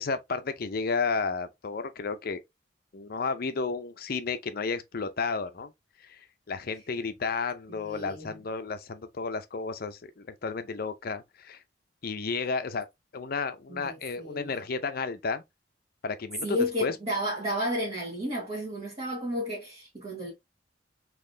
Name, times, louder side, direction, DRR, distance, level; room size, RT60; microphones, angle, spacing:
voice 1, 0.0-2.4 2.9-5.7 6.0-6.2 6.5-11.6 12.0-12.9 13.1-15.4 16.0-16.9, left 4 dB, 55° left, 0.6 m, -32 dB
voice 2, 7.7-8.4 13.7-14.6 16.4-20.3, equal, 35° right, 1.6 m, -32 dB
4.0 x 3.0 x 2.6 m
head